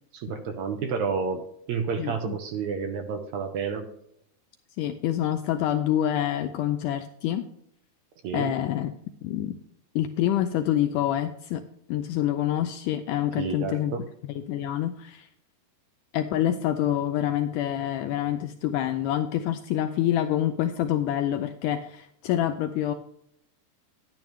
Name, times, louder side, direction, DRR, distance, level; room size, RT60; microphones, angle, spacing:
voice 1, 0.1-3.9 8.2-8.5 13.4-14.0, right 5 dB, 75° right, 5 dB, 1.7 m, -30 dB
voice 2, 2.0-2.4 4.8-7.5 8.3-8.9 9.2-9.6 10.0-11.6 11.9-14.0 14.4-15.3 16.1-22.9, left 11 dB, 90° left, 8 dB, 1.8 m, -27 dB
11.0 x 10.5 x 3.1 m, 0.72 s
omnidirectional pair, 4.3 m